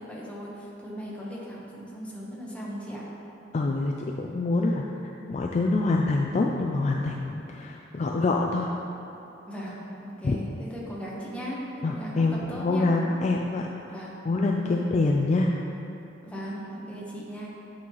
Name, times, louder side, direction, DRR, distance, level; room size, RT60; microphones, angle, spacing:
voice 1, 0.0-3.0 4.6-4.9 9.5-12.2 12.5-12.9 13.9-14.2 14.6-14.9 16.2-17.5, equal, 5° left, -5 dB, 1.0 m, -38 dB
voice 2, 3.5-4.8 5.3-8.7 10.2-10.4 11.8-13.7 14.3-15.5, left 3 dB, 35° left, 0 dB, 0.3 m, -25 dB
8.6 x 5.5 x 3.0 m, 2.9 s
head